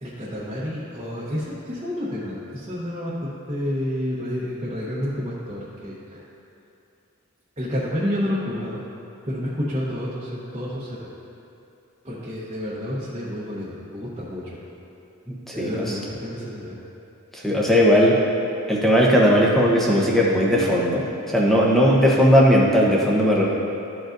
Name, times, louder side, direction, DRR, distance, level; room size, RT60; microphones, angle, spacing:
voice 1, 0.0-6.2 7.6-8.8 9.2-11.1 12.0-14.6 15.5-16.8, equal, 25° right, -9 dB, 1.0 m, -29 dB
voice 2, 15.3-15.8 17.3-18.2 18.7-23.4, equal, ahead, -4 dB, 0.9 m, -18 dB
13.0 x 5.0 x 2.6 m, 2.7 s
head